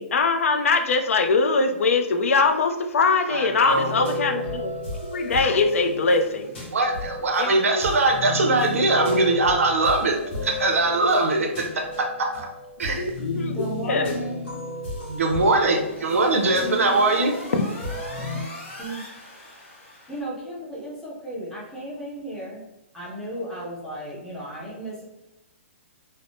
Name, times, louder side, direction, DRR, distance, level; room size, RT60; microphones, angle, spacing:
voice 1, 0.0-4.7 5.0-6.5 7.4-7.8 12.9-14.1 17.5-17.7, left 4 dB, 80° left, 6 dB, 0.4 m, -22 dB
voice 2, 3.3-4.1 6.7-12.5 12.8-13.1 15.1-17.3, right 2 dB, 85° right, 3 dB, 0.6 m, -22 dB
sound 1, 3.7-18.4, left 2 dB, 50° left, 1.4 m, -33 dB
voice 3, 13.5-14.4 18.8-19.0 20.1-22.6 22.9-25.0, right 1 dB, 5° left, -6 dB, 0.5 m, -34 dB
sound 2, 15.2-20.2, left 1 dB, 30° left, 1.4 m, -41 dB
3.3 x 2.0 x 2.5 m, 0.92 s
hypercardioid pair, 175°, 7 cm